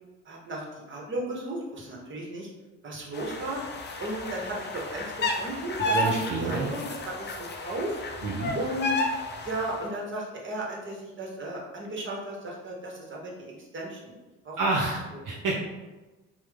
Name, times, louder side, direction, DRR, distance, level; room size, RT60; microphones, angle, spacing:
voice 1, 0.2-2.5 2.8-3.6 4.0-8.0 8.5-8.9 9.4-14.1 14.4-14.6, right 1 dB, 30° right, -2 dB, 1.0 m, -35 dB
sound 1, 3.1-9.8, left 1 dB, 30° left, 0.5 m, -32 dB
voice 2, 5.8-6.7 8.2-8.5 14.6-15.6, right 3 dB, 55° right, -3 dB, 0.7 m, -28 dB
3.1 x 2.0 x 3.3 m, 1.1 s
hypercardioid pair, 50°, 37 cm